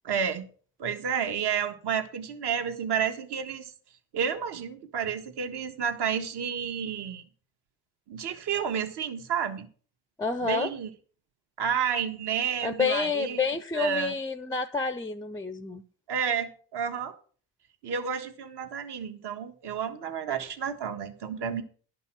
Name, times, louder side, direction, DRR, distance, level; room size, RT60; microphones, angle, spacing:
voice 1, 0.0-0.5 0.8-3.7 4.1-7.2 8.1-9.7 10.4-10.9 11.6-13.4 13.7-14.2 16.1-17.1 17.8-21.6, right 7 dB, 60° right, 1.6 m, -30 dB
voice 2, 10.2-10.7 12.6-15.8, left 5 dB, 10° left, 0.5 m, -29 dB
11.5 x 5.5 x 7.5 m
cardioid pair, 110°, 45 cm